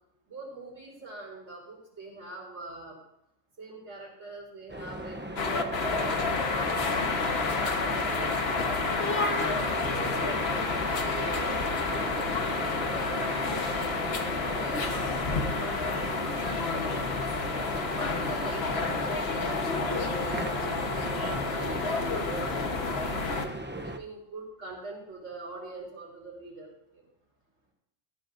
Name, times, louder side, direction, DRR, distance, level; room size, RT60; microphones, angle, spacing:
voice 1, 0.3-3.0 3.6-5.2 5.5-9.0 9.3-17.5 17.9-23.5 23.8-27.0, right 3 dB, 60° right, -8 dB, 4.6 m, -43 dB
sound 1, 4.7-24.0, right 1 dB, 15° right, 0.5 m, -37 dB
sound 2, 5.4-23.5, left 4 dB, 55° left, 1.4 m, -30 dB
Acoustic guitar, 19.9-23.4, right 2 dB, 30° right, 2.7 m, -44 dB
19.0 x 15.0 x 2.6 m, 0.78 s
omnidirectional pair, 1.4 m